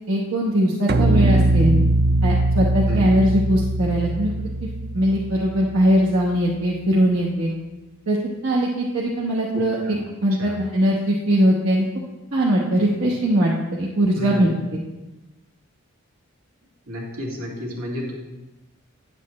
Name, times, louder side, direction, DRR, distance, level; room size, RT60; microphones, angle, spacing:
voice 1, 0.1-1.7 2.2-4.5 4.9-7.5 8.1-8.2 8.4-9.8 10.2-11.8 12.3-14.8, right 1 dB, 70° right, -4 dB, 1.1 m, -20 dB
sound 1, 0.9-6.1, right 2 dB, 45° right, 0.4 m, -21 dB
voice 2, 2.9-3.2 9.5-10.0 10.4-10.6 14.1-14.5 16.9-18.1, left 1 dB, 85° right, -3 dB, 2.4 m, -31 dB
10.5 x 8.2 x 3.2 m, 1.1 s
head